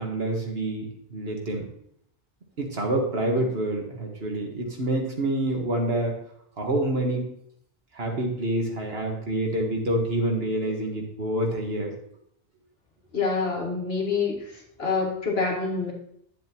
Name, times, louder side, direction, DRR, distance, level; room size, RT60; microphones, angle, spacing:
voice 1, 0.0-1.7 2.6-6.2 6.6-7.3 7.9-11.9, right 1 dB, 75° right, 1 dB, 1.8 m, -27 dB
voice 2, 13.1-15.9, left 4 dB, 80° left, 0 dB, 2.0 m, -27 dB
10.5 x 7.2 x 3.0 m, 0.70 s
omnidirectional pair, 1.0 m